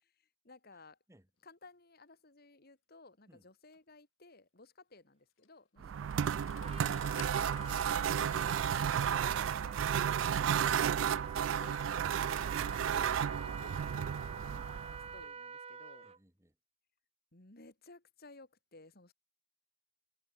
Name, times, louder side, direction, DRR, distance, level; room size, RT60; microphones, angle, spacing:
voice 1, 0.0-1.0 1.4-7.4 8.2-13.1 13.4-14.3 14.9-16.1 17.3-19.1, left 3 dB, 55° left, 2.9 m, -58 dB
Engine starting, 3.7-3.8 5.4-5.5 6.0-9.3, left 8 dB, 90° left, 0.6 m, -53 dB
sound 1, 5.8-15.2, right 8 dB, 90° right, 0.4 m, -33 dB
Trumpet, 6.6-16.2, right 6 dB, 30° right, 0.9 m, -47 dB
voice 2, 14.5-14.9 16.0-16.6, equal, 15° right, 2.0 m, -63 dB
head